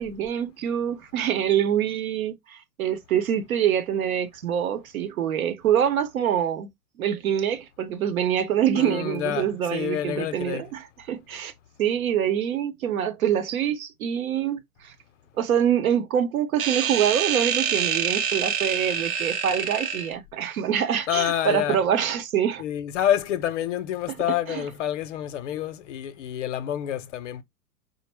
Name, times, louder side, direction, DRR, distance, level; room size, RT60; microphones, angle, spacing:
voice 1, 0.0-6.7 7.0-11.5 11.8-14.9 15.4-22.6 24.5-24.6, right 9 dB, 65° right, 0.9 m, -25 dB
voice 2, 8.7-10.7 21.1-21.8 22.6-27.4, left 11 dB, 50° left, 0.6 m, -28 dB
sound 1, 16.6-20.1, right 7 dB, 35° right, 0.5 m, -26 dB
4.2 x 2.0 x 3.3 m
figure-of-eight pair, 105°, 46 cm